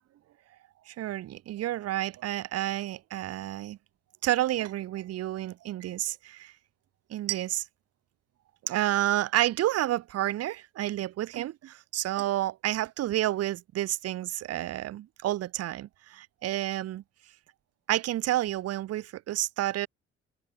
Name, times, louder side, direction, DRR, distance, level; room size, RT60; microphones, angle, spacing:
voice 1, 0.9-3.8 4.2-6.5 7.1-7.6 8.6-17.0 17.9-19.9, right 14 dB, 50° right, 1.0 m, -30 dB
open air
figure-of-eight pair, 45°, 32 cm